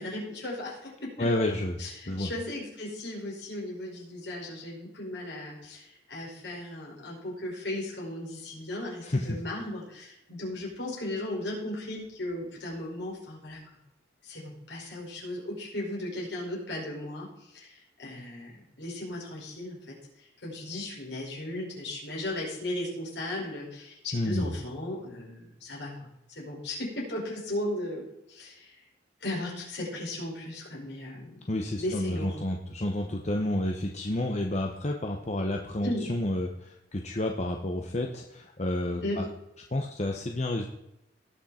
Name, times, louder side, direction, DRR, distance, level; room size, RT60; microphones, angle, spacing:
voice 1, 0.0-1.3 1.8-13.6 14.2-25.9 26.3-28.8 29.2-31.5 31.8-32.4 35.8-36.1 39.0-39.2, left 1 dB, 70° left, -3 dB, 5.2 m, -36 dB
voice 2, 1.2-1.8 2.1-2.3 9.0-9.3 24.1-24.5 31.5-39.3 39.7-40.7, left 1 dB, 35° left, 2 dB, 0.9 m, -30 dB
18.5 x 6.4 x 4.3 m, 0.86 s
head